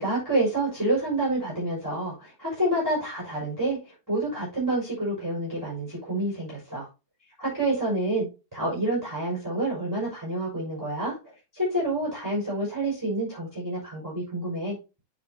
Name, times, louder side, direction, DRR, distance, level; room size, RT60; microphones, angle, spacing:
voice 1, 0.0-3.8 4.1-6.9 7.4-8.3 8.5-11.2 11.5-14.8, right 1 dB, 5° right, -6 dB, 5.8 m, -28 dB
8.8 x 8.4 x 2.9 m, 0.29 s
omnidirectional pair, 4.0 m